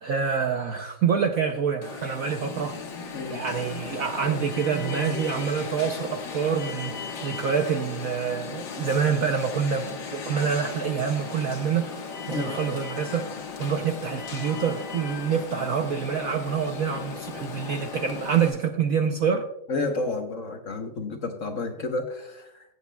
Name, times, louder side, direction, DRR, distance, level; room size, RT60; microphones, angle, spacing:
voice 1, 0.0-2.8 3.3-19.5, right 7 dB, 65° right, 5 dB, 0.8 m, -27 dB
Alarm, 1.8-18.5, left 5 dB, 75° left, 2.1 m, -36 dB
voice 2, 19.7-22.6, left 3 dB, 50° left, 4 dB, 1.1 m, -31 dB
16.5 x 8.4 x 2.2 m, 0.81 s
omnidirectional pair, 2.1 m